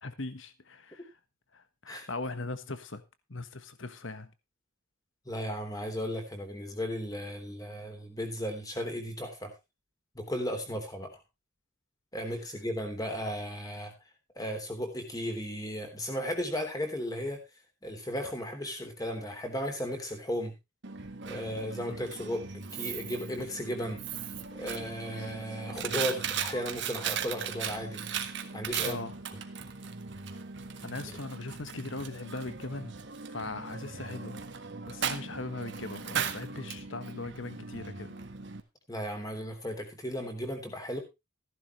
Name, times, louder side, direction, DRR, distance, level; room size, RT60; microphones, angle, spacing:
voice 1, 0.0-1.1 1.5-3.0 3.3-4.3 28.8-29.2 30.8-32.9 33.3-34.4 34.9-38.2, left 2 dB, 60° left, 1.3 m, -39 dB
voice 2, 5.2-9.5 10.1-11.1 12.1-13.9 14.3-17.4 17.8-20.5 21.2-24.0 24.5-28.0 28.5-29.0 38.9-41.0, equal, 15° left, 3.3 m, -35 dB
Coin (dropping), 20.8-38.6, right 7 dB, 55° right, 1.6 m, -38 dB
15.0 x 11.0 x 3.2 m
head